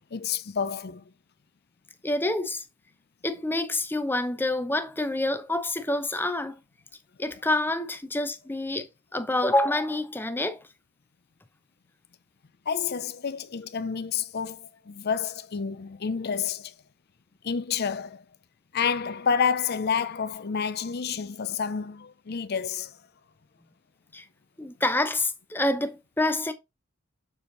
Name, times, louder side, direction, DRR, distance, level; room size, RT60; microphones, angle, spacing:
voice 1, 0.1-1.0 12.7-16.7 17.4-18.2 18.7-23.0, left 6 dB, 50° left, 0.6 m, -29 dB
voice 2, 2.0-2.6 3.2-6.6 7.2-10.6 24.1-24.2 24.6-26.5, left 1 dB, 10° left, 0.7 m, -27 dB
7.0 x 4.4 x 3.9 m
head